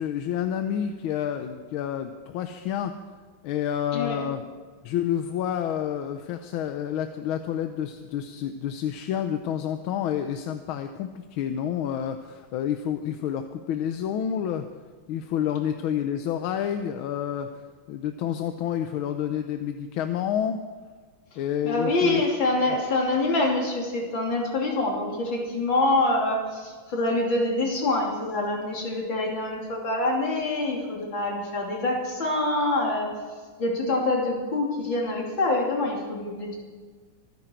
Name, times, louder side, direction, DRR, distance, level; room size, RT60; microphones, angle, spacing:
voice 1, 0.0-2.9 3.4-4.4 4.8-14.7 15.1-17.5 17.9-20.6 21.4-22.2, left 9 dB, 80° left, 7 dB, 1.5 m, -29 dB
voice 2, 3.9-4.3 21.6-33.2 33.6-36.6, left 2 dB, 65° left, -1 dB, 3.6 m, -25 dB
24.5 x 10.0 x 4.5 m, 1.5 s
omnidirectional pair, 2.3 m